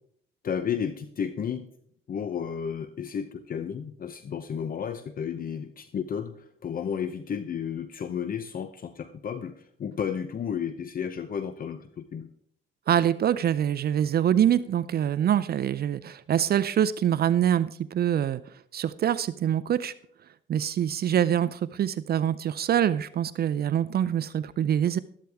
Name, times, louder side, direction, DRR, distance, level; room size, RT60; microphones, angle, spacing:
voice 1, 0.4-1.7 2.1-12.3, left 7 dB, 45° left, 11 dB, 0.8 m, -32 dB
voice 2, 12.9-18.4 18.7-19.9 20.5-25.0, right 10 dB, 50° right, 15 dB, 0.5 m, -25 dB
12.5 x 12.5 x 3.5 m, 0.65 s
cardioid pair, 90°, 20 cm